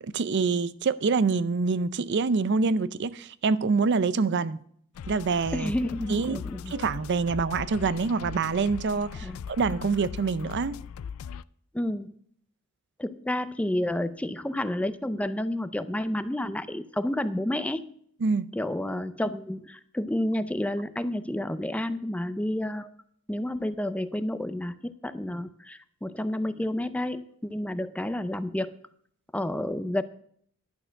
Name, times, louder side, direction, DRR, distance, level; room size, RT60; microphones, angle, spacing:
voice 1, 0.0-4.6 5.1-5.7 6.1-6.4 6.7-10.8 18.2-18.5, right 4 dB, 55° right, 0.5 m, -26 dB
sound 1, 4.9-11.4, left 7 dB, 80° left, 0.3 m, -39 dB
voice 2, 5.5-6.7 9.2-9.4 11.7-12.1 13.0-17.8 18.5-22.9 23.3-28.7 29.3-30.0, left 1 dB, 5° left, 0.4 m, -30 dB
11.5 x 6.6 x 6.4 m
head